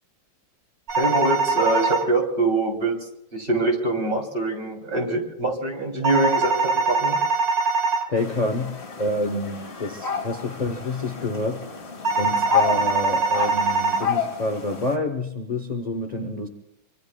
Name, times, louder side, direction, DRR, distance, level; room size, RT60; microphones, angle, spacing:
sound 1, 0.9-2.0 6.0-8.0 12.0-14.0, right 4 dB, 45° right, 1.9 m, -22 dB
voice 1, 1.0-3.0 3.3-7.2, right 2 dB, 25° right, 1 dB, 3.0 m, -24 dB
voice 2, 8.1-11.7 12.2-16.5, left 2 dB, 55° left, 5 dB, 0.4 m, -28 dB
sound 2, 8.2-15.0, left 7 dB, 35° left, 1.6 m, -30 dB
24.5 x 24.5 x 2.2 m, 0.84 s
omnidirectional pair, 2.2 m